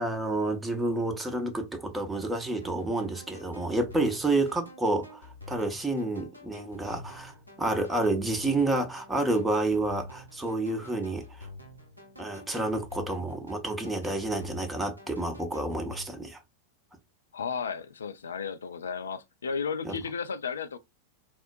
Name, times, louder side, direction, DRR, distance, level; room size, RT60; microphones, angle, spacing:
voice 1, 0.0-5.2 5.5-11.5 12.2-16.4 19.8-20.0, right 2 dB, 10° right, 0.7 m, -29 dB
sound 1, 2.6-16.1, left 2 dB, 90° right, 0.9 m, -48 dB
voice 2, 17.3-20.8, left 6 dB, 70° left, 0.4 m, -34 dB
3.7 x 2.1 x 2.3 m
figure-of-eight pair, 90°, 0 cm